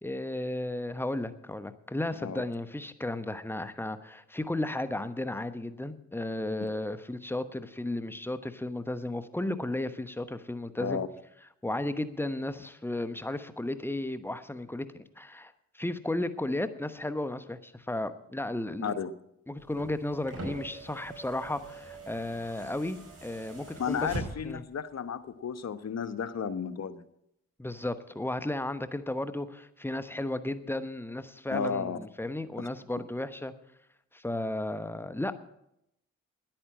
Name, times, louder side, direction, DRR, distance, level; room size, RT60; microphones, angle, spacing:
voice 1, 0.0-11.0 11.6-19.0 19.5-24.1 24.4-24.6 27.6-33.5 34.1-35.3, left 1 dB, 5° left, 11 dB, 1.1 m, -34 dB
voice 2, 18.8-19.1 23.8-27.0 31.5-32.0, left 6 dB, 50° left, 12 dB, 1.0 m, -33 dB
sound 1, 19.6-24.7 25.9-26.0, right 2 dB, 50° right, 5.7 m, -43 dB
10.5 x 8.9 x 8.6 m, 0.80 s
supercardioid pair, 45°, 33 cm